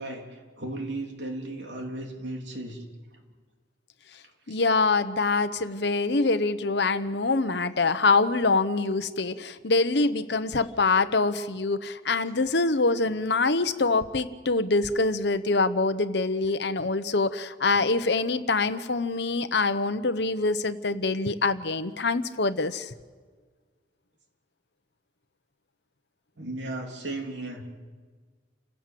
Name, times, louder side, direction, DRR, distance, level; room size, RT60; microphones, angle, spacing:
voice 1, 0.0-2.9 4.5-4.6 17.7-17.8 26.4-27.6, right 2 dB, 70° right, 2 dB, 3.3 m, -35 dB
voice 2, 4.5-22.9, left 3 dB, 60° left, 12 dB, 1.0 m, -25 dB
29.0 x 16.5 x 7.7 m, 1.5 s
head